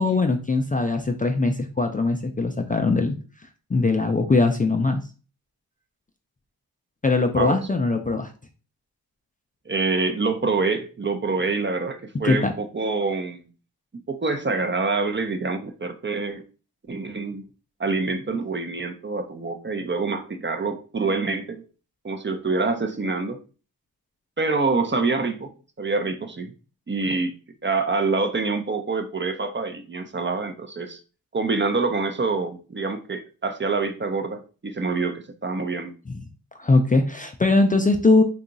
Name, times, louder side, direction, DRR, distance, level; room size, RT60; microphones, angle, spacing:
voice 1, 0.0-3.2 3.7-5.0 7.0-8.3 12.2-12.5 36.6-38.2, left 3 dB, 20° left, 4 dB, 0.4 m, -21 dB
voice 2, 9.7-13.5 14.1-16.4 16.9-17.4 17.8-21.6 22.0-23.4 24.4-26.5 26.9-27.3 27.6-31.0 31.3-35.9, right 3 dB, 30° right, 6 dB, 0.6 m, -26 dB
2.8 x 2.4 x 3.8 m, 0.36 s
cardioid pair, 45°, 38 cm